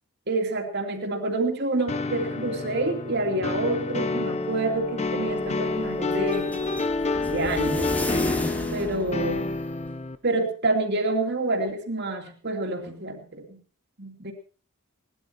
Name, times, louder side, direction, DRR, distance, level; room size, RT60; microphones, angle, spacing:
voice 1, 0.3-6.7 7.3-8.1 8.7-9.6 10.2-13.6 14.0-14.3, right 2 dB, 50° right, 3 dB, 2.7 m, -28 dB
sound 1, 1.9-10.1, left 3 dB, 30° left, 0.8 m, -28 dB
sound 2, 4.8-9.9, left 1 dB, 5° left, 1.0 m, -35 dB
18.5 x 12.0 x 4.5 m, 0.39 s
head